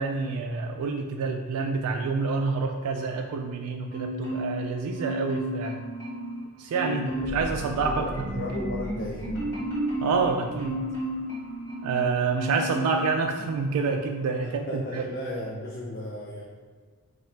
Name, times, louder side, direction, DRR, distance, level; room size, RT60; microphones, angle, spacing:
voice 1, 0.0-5.8 6.6-8.6 10.0-10.8 11.8-15.0, right 4 dB, 85° right, 5 dB, 0.3 m, -28 dB
Marimba xylophone, 3.9-4.7 4.9-6.4 6.7-7.4 7.8-12.0 12.4-13.1 13.5-13.7, equal, 15° left, 1.4 m, -33 dB
voice 2, 6.8-7.4 7.7-9.3 14.4-16.4, left 1 dB, 50° left, -3 dB, 0.4 m, -35 dB
sound 1, 7.1-11.6 12.1-12.2, equal, 80° left, 1.4 m, -40 dB
3.2 x 2.4 x 4.3 m, 1.5 s
head